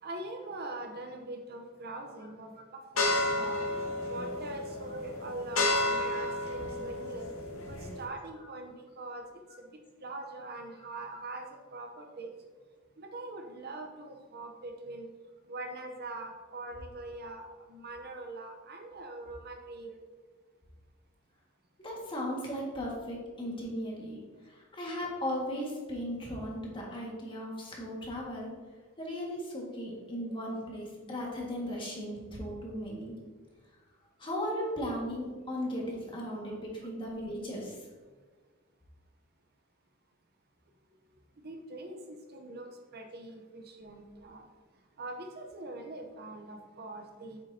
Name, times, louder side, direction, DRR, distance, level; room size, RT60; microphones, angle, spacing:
voice 1, 0.0-3.6 4.0-7.3 7.6-12.3 13.0-15.1 15.5-20.0 36.4-36.6 41.4-42.7 42.9-44.5 45.0-47.4, right 2 dB, 50° right, 3 dB, 0.8 m, -43 dB
sound 1, 3.0-8.0, left 2 dB, 75° left, 1.5 m, -32 dB
voice 2, 21.8-24.2 24.4-28.5 29.0-33.1 34.2-37.8, equal, 25° left, -3 dB, 1.8 m, -36 dB
8.3 x 6.3 x 2.8 m, 1.4 s
head